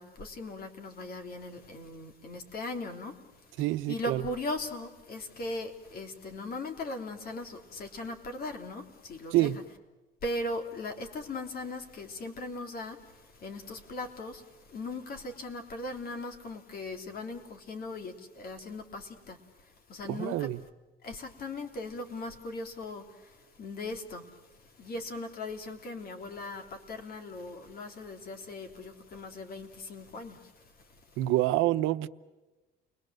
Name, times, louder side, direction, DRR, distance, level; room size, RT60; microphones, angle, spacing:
voice 1, 0.0-3.2 3.9-9.5 10.2-19.4 19.9-20.5 21.0-24.4 24.8-30.6, left 2 dB, 50° left, 3.4 m, -39 dB
voice 2, 3.6-4.3 9.3-9.6 20.1-20.6 31.2-32.1, right 16 dB, 90° right, 0.9 m, -27 dB
30.0 x 21.5 x 7.7 m
cardioid pair, 115°, 20 cm